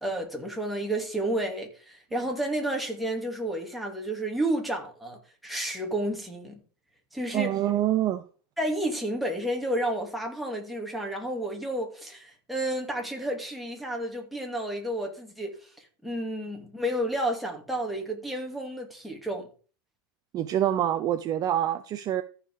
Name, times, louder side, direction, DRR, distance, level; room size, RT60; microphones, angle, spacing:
voice 1, 0.0-6.6 7.1-7.6 8.6-15.6 16.0-19.5, right 1 dB, ahead, 2.5 m, -31 dB
voice 2, 7.3-8.2 20.3-22.2, right 12 dB, 30° right, 0.7 m, -26 dB
14.0 x 4.9 x 4.9 m
supercardioid pair, 140°, 13 cm